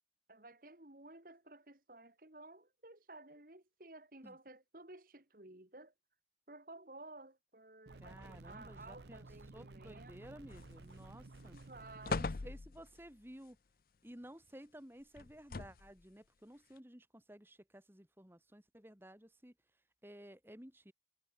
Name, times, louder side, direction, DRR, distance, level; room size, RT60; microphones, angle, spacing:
voice 1, 0.3-5.9 6.5-10.4 11.5-12.3, right 2 dB, 50° right, 2.7 m, -55 dB
sound 1, 7.9-12.2, right 2 dB, 75° right, 0.9 m, -54 dB
voice 2, 8.0-9.3 9.5-11.6 12.1-13.6 14.0-19.5 20.0-20.9, equal, 15° right, 2.2 m, -54 dB
sound 2, 10.5-11.0 11.4-11.6 12.0-13.1 15.2-16.0 16.8-16.9, left 3 dB, 55° left, 0.6 m, -40 dB
head